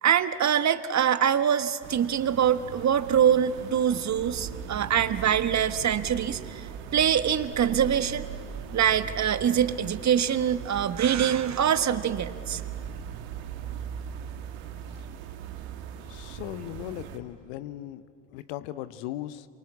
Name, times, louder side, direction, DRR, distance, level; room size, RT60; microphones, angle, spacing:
voice 1, 0.0-6.7 6.9-8.2 8.7-12.6, right 9 dB, 45° right, 11 dB, 1.3 m, -24 dB
sound 1, 1.8-17.2, right 8 dB, 75° right, 1.7 m, -39 dB
voice 2, 16.1-18.0 18.3-19.5, left 13 dB, 75° left, 14 dB, 1.1 m, -37 dB
27.5 x 25.5 x 8.5 m, 2.3 s
hypercardioid pair, 50°, 39 cm